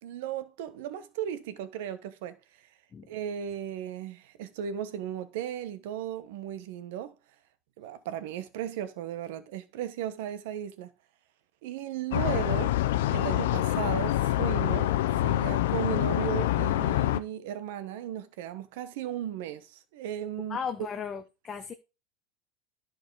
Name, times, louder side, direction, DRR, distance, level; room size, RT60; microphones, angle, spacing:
voice 1, 0.0-2.4 3.1-7.1 7.8-10.9 11.6-12.8 13.1-15.0 15.2-20.6, right 10 dB, 70° right, 1.1 m, -36 dB
sound 1, 12.1-17.2, left 14 dB, 85° left, 0.6 m, -26 dB
voice 2, 20.5-21.7, left 6 dB, 25° left, 0.8 m, -36 dB
11.0 x 4.8 x 4.7 m
supercardioid pair, 140°, 0 cm